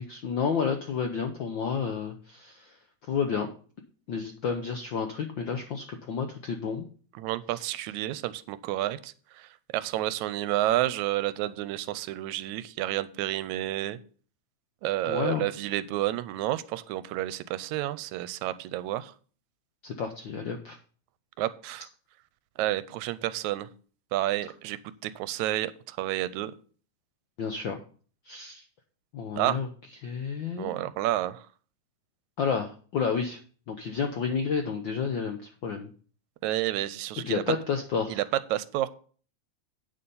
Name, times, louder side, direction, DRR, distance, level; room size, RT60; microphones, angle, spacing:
voice 1, 0.0-2.8 3.1-3.5 4.1-6.9 7.5-7.8 15.0-15.5 19.8-20.8 27.4-27.8 28.2-28.6 29.1-29.7 30.0-30.7 32.4-33.4 33.7-35.9 37.3-38.2, left 6 dB, 75° left, 6 dB, 1.1 m, -31 dB
voice 2, 7.2-14.0 14.8-19.1 21.4-21.9 22.6-23.7 24.1-26.5 29.4-29.6 30.6-31.4 36.4-37.4 38.1-38.2 38.5-38.9, right 14 dB, 85° right, 16 dB, 1.9 m, -30 dB
8.9 x 6.7 x 5.5 m, 0.41 s
omnidirectional pair, 3.3 m